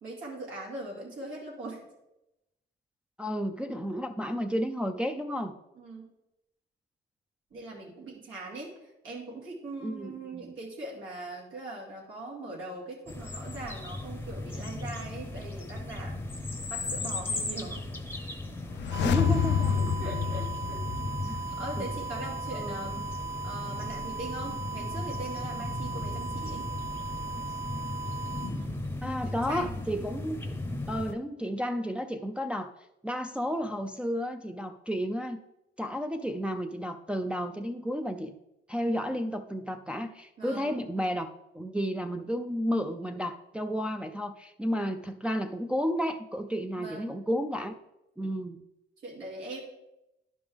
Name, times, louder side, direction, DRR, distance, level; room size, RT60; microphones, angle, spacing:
voice 1, 0.0-1.8 5.7-6.1 7.5-17.8 19.7-20.9 21.2-23.1 23.4-26.7 29.2-29.7 40.4-40.7 46.8-47.1 49.0-49.6, right 2 dB, 80° right, -4 dB, 2.4 m, -41 dB
voice 2, 3.2-5.6 9.8-10.5 19.0-20.0 21.2-21.4 21.8-21.9 22.5-23.0 29.0-30.5 30.9-32.7 33.0-35.4 35.8-38.3 38.7-41.3 41.5-47.8 48.2-48.6, equal, 5° right, 3 dB, 0.5 m, -32 dB
sound 1, 13.1-31.1, left 2 dB, 10° left, 0.8 m, -37 dB
sound 2, 18.6-21.6 21.8-21.9, left 7 dB, 65° left, 0.5 m, -28 dB
sound 3, 18.9-28.5, right 4 dB, 65° right, 2.4 m, -38 dB
10.5 x 5.2 x 3.5 m, 0.91 s
cardioid pair, 90°, 20 cm